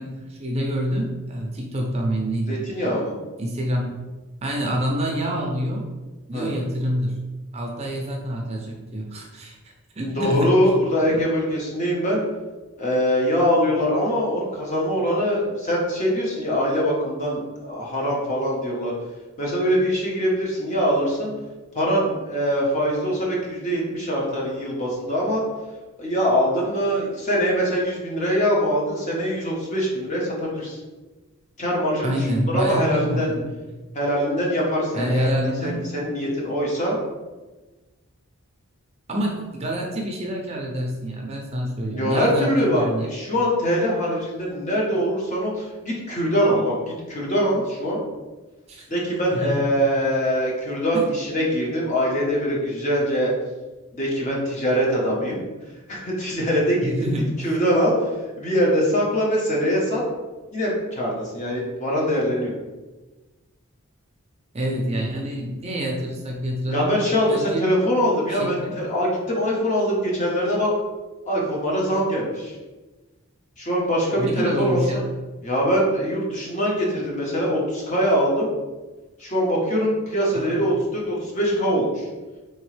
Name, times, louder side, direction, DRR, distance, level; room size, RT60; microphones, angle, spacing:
voice 1, 0.0-2.6 3.4-3.9 4.4-5.8 6.3-7.2 7.5-10.6 11.1-11.2 32.0-33.5 34.9-35.9 39.1-43.1 48.7-48.9 49.3-49.6 50.9-51.0 56.8-57.5 64.5-66.9 67.3-67.7 68.3-68.7 74.2-75.1 80.3-80.7, equal, 30° right, -1 dB, 0.5 m, -27 dB
voice 2, 2.5-3.1 6.3-6.5 10.1-12.2 12.8-18.9 19.4-21.3 21.7-25.4 26.0-30.8 31.6-32.1 32.5-33.3 33.9-35.3 35.6-37.0 41.9-48.0 48.9-53.3 53.9-55.4 55.9-57.1 57.4-57.9 58.4-60.0 60.5-62.5 66.7-70.7 71.3-72.5 73.6-74.8 75.4-78.5 79.2-82.0, equal, 35° left, -3 dB, 0.9 m, -23 dB
3.8 x 3.0 x 3.2 m, 1.2 s
head